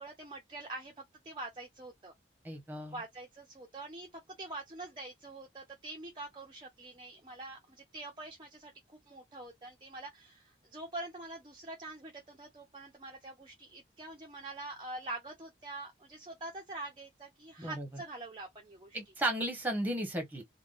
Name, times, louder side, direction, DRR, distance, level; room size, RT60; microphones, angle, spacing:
voice 1, 0.0-2.1 2.9-19.1, right 2 dB, 25° right, 0.5 m, -45 dB
voice 2, 2.4-3.0 17.6-17.9 18.9-20.4, right 1 dB, 10° right, 0.9 m, -34 dB
3.5 x 2.1 x 2.4 m
head